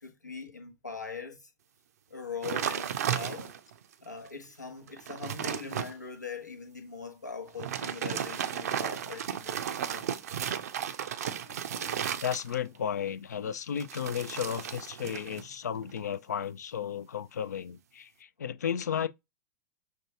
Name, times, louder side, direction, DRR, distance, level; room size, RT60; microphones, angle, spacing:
voice 1, 0.0-1.5 2.1-3.5 4.0-9.6 9.9-10.5 11.3-12.1, left 5 dB, 85° left, 0.9 m, -42 dB
sound 1, 2.4-3.7 4.3-4.4 4.8-5.9 7.5-12.8 13.8-15.5 15.7-16.1, right 9 dB, 65° right, 0.4 m, -34 dB
voice 2, 12.2-19.1, left 8 dB, 70° left, 0.4 m, -34 dB
6.1 x 2.3 x 2.6 m
figure-of-eight pair, 95°, 9 cm